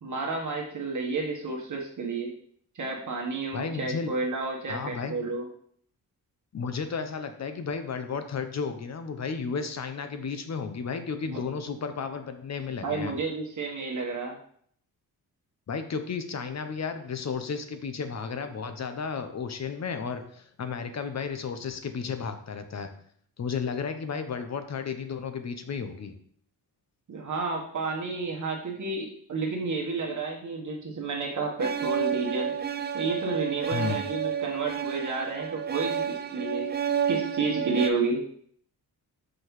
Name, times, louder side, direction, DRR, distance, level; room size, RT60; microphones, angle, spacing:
voice 1, 0.0-2.3 2.7-5.5 11.3-11.4 12.8-14.4 27.1-32.5 32.9-36.7 37.1-38.3, right 3 dB, 50° right, -1 dB, 1.2 m, -31 dB
voice 2, 3.5-4.1 4.7-5.2 6.5-13.1 15.7-22.9 23.4-26.1 33.7-34.0, left 5 dB, 45° left, 8 dB, 0.8 m, -33 dB
sound 1, 31.6-37.9, right 8 dB, 30° right, 0.4 m, -30 dB
5.8 x 5.1 x 3.1 m, 0.62 s
cardioid pair, 90°, 38 cm